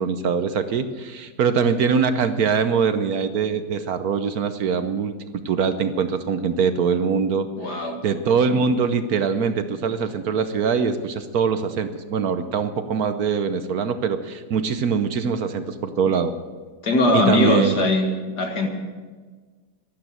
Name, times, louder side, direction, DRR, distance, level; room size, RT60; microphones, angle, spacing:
voice 1, 0.0-5.1 5.4-16.3 17.1-17.9, right 6 dB, 65° right, 10 dB, 1.2 m, -23 dB
voice 2, 7.6-8.0 16.8-18.7, left 2 dB, 65° left, 3 dB, 2.4 m, -20 dB
13.0 x 12.0 x 7.6 m, 1.4 s
omnidirectional pair, 1.9 m